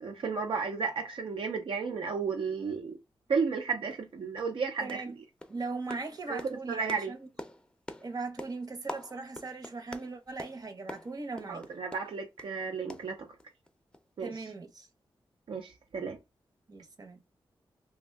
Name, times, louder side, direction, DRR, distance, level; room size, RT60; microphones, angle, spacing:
voice 1, 0.0-3.0 3.3-5.0 6.3-6.4 6.7-7.1 11.5-13.3 14.2-14.5 15.5-16.2, right 5 dB, 70° right, 0.5 m, -33 dB
sound 1, 3.4-3.5 3.9-4.1 4.4-4.6 4.9-5.1 5.4-12.5 12.9-13.7 13.9-14.1 14.4-14.5, left 1 dB, 10° left, 0.5 m, -46 dB
voice 2, 4.8-5.2 5.5-7.3 8.0-11.6 14.2-14.9 16.7-17.2, right 3 dB, 45° right, 0.8 m, -39 dB
2.6 x 2.2 x 3.2 m
wide cardioid pair, 100°, 9 cm